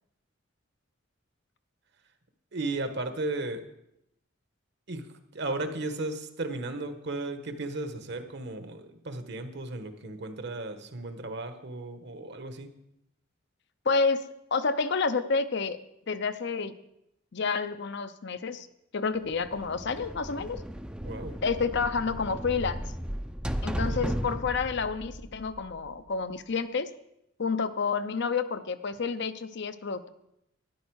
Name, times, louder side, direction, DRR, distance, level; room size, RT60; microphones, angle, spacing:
voice 1, 2.5-3.7 4.9-12.7 21.0-21.3 23.7-24.3, right 2 dB, 60° right, 8 dB, 1.3 m, -35 dB
voice 2, 13.9-14.2 14.5-15.8 16.1-16.7 17.3-18.7 18.9-20.6 21.4-22.8 23.6-26.9 27.4-30.1, left 5 dB, 60° left, 11 dB, 0.7 m, -29 dB
sound 1, 19.3-26.1, equal, 5° right, 0.5 m, -35 dB
12.5 x 10.5 x 4.7 m, 0.80 s
head